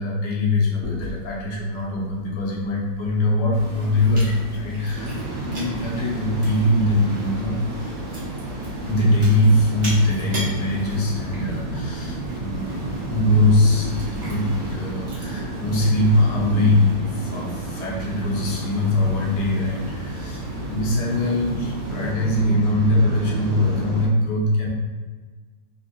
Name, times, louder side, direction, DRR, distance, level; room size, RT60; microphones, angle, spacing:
voice 1, 0.0-8.0 8.9-14.5 14.7-24.7, left 1 dB, 70° left, -4 dB, 1.2 m, -22 dB
Chewing mastication, 0.8-16.6, equal, 50° right, 1.1 m, -40 dB
sound 1, 3.5-22.1, equal, 70° right, 1.2 m, -37 dB
Waves surf, 4.9-24.1, right 2 dB, 90° right, 1.5 m, -32 dB
3.5 x 2.5 x 2.6 m, 1.4 s
omnidirectional pair, 2.0 m